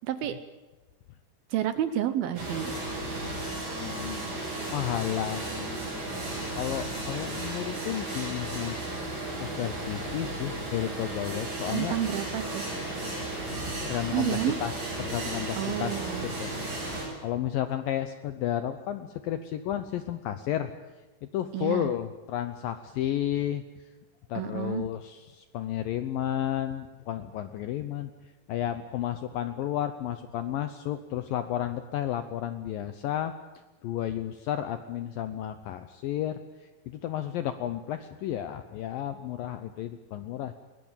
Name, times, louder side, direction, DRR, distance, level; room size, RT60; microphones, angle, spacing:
voice 1, 0.0-0.4 1.5-2.8 11.7-12.7 14.1-14.6 15.6-16.3 21.5-21.9 24.4-24.9, right 11 dB, 75° right, 11 dB, 2.4 m, -30 dB
sound 1, 2.4-17.1, right 2 dB, 45° right, 9.1 m, -34 dB
voice 2, 3.8-4.3 4.7-6.2 6.5-8.8 9.4-12.0 13.8-16.5 17.0-20.7 21.2-23.6 24.3-28.1 28.5-33.3 33.8-40.5, left 11 dB, 75° left, 10 dB, 2.1 m, -32 dB
21.5 x 20.0 x 8.9 m, 1.2 s
omnidirectional pair, 5.1 m